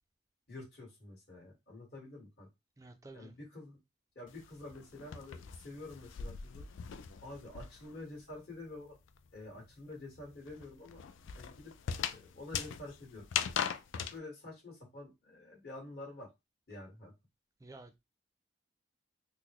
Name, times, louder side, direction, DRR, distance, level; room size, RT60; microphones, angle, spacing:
voice 1, 0.5-2.5 3.1-3.8 4.1-6.6 7.2-9.0 9.3-11.0 11.4-11.7 12.1-13.6 13.9-16.3 16.7-17.1, left 2 dB, 55° left, 1.6 m, -48 dB
voice 2, 2.8-3.3 17.6-18.0, right 2 dB, 15° right, 0.4 m, -52 dB
sound 1, 4.3-8.0 8.3-14.2, left 8 dB, 85° left, 0.4 m, -40 dB
3.9 x 2.0 x 3.0 m
head